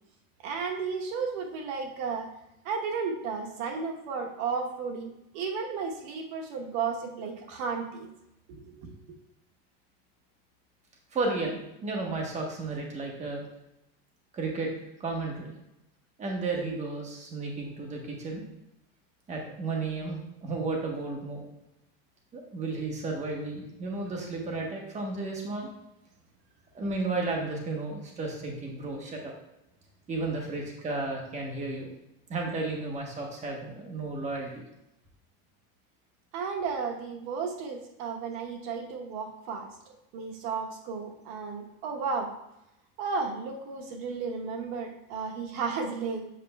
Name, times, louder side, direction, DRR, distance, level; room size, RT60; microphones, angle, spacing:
voice 1, 0.4-2.3 2.6-8.1 8.5-8.9 36.3-39.7 40.1-42.3 43.0-46.3, right 5 dB, 75° right, 2 dB, 1.0 m, -33 dB
voice 2, 11.1-13.4 14.3-14.7 15.0-15.5 16.2-18.4 19.3-21.4 22.3-25.7 26.7-29.3 30.1-31.9 32.3-34.5, right 3 dB, 20° right, 0 dB, 1.1 m, -33 dB
7.6 x 5.4 x 2.2 m, 0.86 s
cardioid pair, 150°, 31 cm